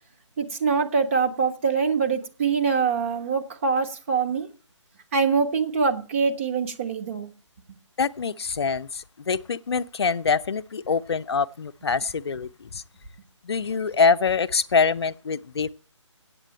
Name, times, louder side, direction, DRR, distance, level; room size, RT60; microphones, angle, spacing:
voice 1, 0.4-4.5 5.1-7.3, right 5 dB, 25° right, 0.9 m, -24 dB
voice 2, 8.0-12.8 13.4-15.7, left 5 dB, 55° left, 0.6 m, -24 dB
8.4 x 8.0 x 8.9 m
figure-of-eight pair, 155°, 16 cm